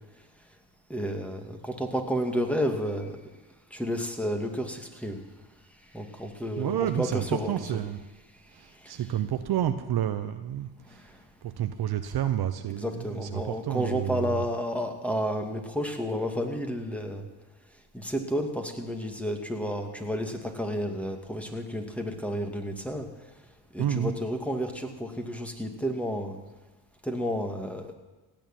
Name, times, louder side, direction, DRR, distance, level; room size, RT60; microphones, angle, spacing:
voice 1, 0.9-3.2 3.7-5.2 5.8-7.5 8.5-9.0 10.9-11.2 12.8-17.3 17.9-23.3 23.7-26.4 27.0-27.9, equal, 5° left, 3 dB, 2.5 m, -31 dB
voice 2, 6.6-8.0 8.5-11.0 11.4-14.5 23.8-24.1, right 11 dB, 55° right, 9 dB, 1.0 m, -30 dB
17.0 x 7.0 x 9.2 m, 1.2 s
supercardioid pair, 65°, 46 cm